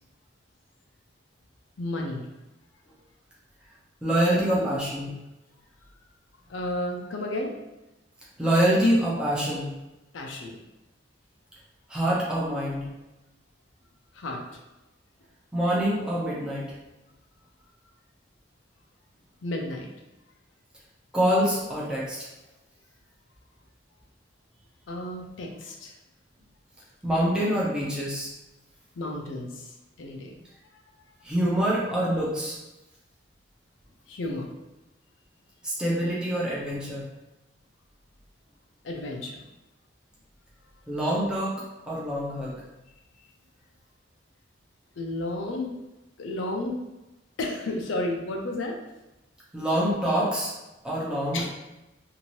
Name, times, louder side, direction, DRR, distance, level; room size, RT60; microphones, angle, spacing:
voice 1, 1.8-2.3 4.3-4.8 6.5-7.5 10.1-10.6 14.1-14.4 19.4-19.9 24.9-25.9 29.0-30.4 34.1-34.5 38.8-39.4 45.0-45.7 46.2-46.8 47.4-48.8 51.3-51.5, left 2 dB, 80° left, 1 dB, 0.5 m, -32 dB
voice 2, 4.0-5.1 8.4-9.8 11.9-12.9 15.5-16.7 21.1-22.3 27.0-28.4 31.2-32.6 35.6-37.1 40.9-41.5 41.9-42.6 49.5-50.5 50.8-51.6, right 1 dB, 5° right, -7 dB, 0.6 m, -25 dB
2.8 x 2.6 x 3.0 m, 0.99 s
head